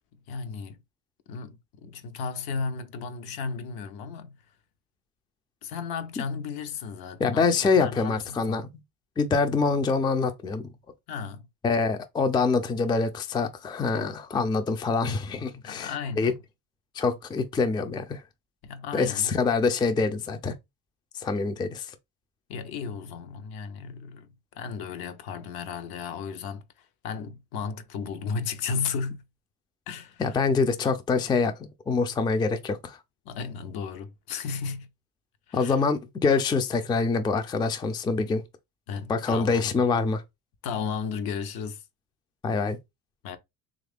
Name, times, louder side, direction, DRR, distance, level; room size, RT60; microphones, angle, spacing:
voice 1, 0.3-0.8 1.3-4.4 5.6-8.7 11.1-11.4 15.6-16.4 18.6-19.3 22.5-24.3 24.5-26.6 27.0-29.2 29.9-30.4 33.2-34.9 35.5-35.8 38.9-39.8 40.6-41.8 43.2-43.4, left 5 dB, 70° left, 0.7 m, -34 dB
voice 2, 7.2-8.7 9.2-10.7 11.6-16.3 17.0-18.2 18.9-20.5 21.2-21.9 30.2-33.0 35.5-38.4 39.1-40.2 42.4-42.8, left 4 dB, 10° left, 0.3 m, -25 dB
3.2 x 2.5 x 3.4 m
cardioid pair, 105°, 38 cm